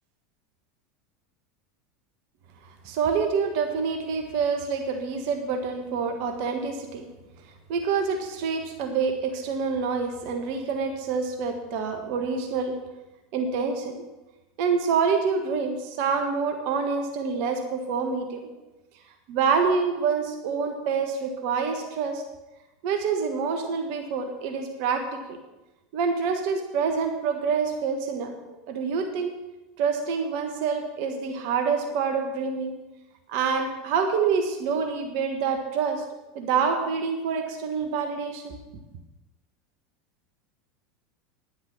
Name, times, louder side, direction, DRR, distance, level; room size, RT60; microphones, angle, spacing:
voice 1, 2.8-7.1 7.7-12.8 13.3-14.0 14.6-18.4 19.3-22.2 22.8-25.4 25.9-28.3 28.7-29.3 29.8-32.7 33.3-36.0 36.3-38.6, right 5 dB, 55° right, 5 dB, 1.6 m, -27 dB
10.5 x 9.9 x 5.6 m, 1.0 s
figure-of-eight pair, 80°, 0 cm